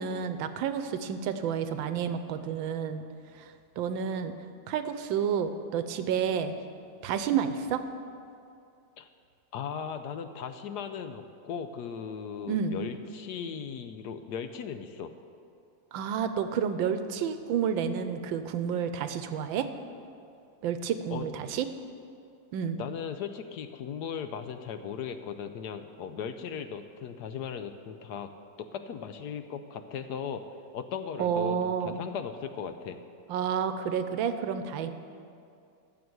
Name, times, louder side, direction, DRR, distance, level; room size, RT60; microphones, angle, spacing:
voice 1, 0.0-3.0 3.4-3.5 3.8-4.3 4.7-6.5 7.0-7.8 12.5-12.8 15.9-19.7 20.6-21.7 22.5-22.8 31.2-32.0 33.3-34.9, right 7 dB, 90° right, 10 dB, 1.5 m, -30 dB
voice 2, 9.5-15.1 21.1-21.3 22.8-28.3 28.6-30.4 30.7-33.0, left 7 dB, 70° left, 9 dB, 1.1 m, -37 dB
14.0 x 7.0 x 7.9 m, 2.4 s
omnidirectional pair, 2.1 m